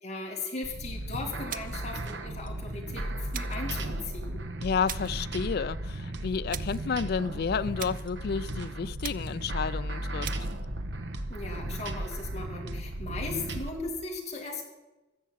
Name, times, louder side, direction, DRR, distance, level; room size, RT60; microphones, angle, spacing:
voice 1, 0.0-4.4 11.3-14.7, left 3 dB, 35° left, 2.5 m, -38 dB
sound 1, 0.6-13.7, right 1 dB, 65° right, 1.0 m, -35 dB
sound 2, 1.5-1.9 3.3-3.7 4.9-5.2 6.5-6.9 7.8-8.2 9.0-9.5 10.2-10.6, right 10 dB, 50° right, 0.5 m, -40 dB
voice 2, 4.6-10.3, left 6 dB, 55° left, 0.4 m, -31 dB
13.5 x 5.6 x 8.5 m
head